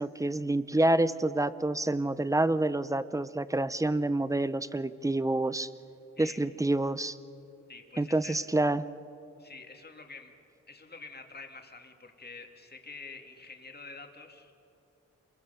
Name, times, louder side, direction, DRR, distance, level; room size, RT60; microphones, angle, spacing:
voice 1, 0.0-5.7 6.2-7.2 8.0-8.9, right 2 dB, 10° right, 15 dB, 0.7 m, -28 dB
voice 2, 7.7-8.4 9.4-10.3 10.7-14.5, left 4 dB, 35° left, 4 dB, 2.3 m, -47 dB
27.5 x 22.0 x 6.9 m, 2.8 s
wide cardioid pair, 85°, 30 cm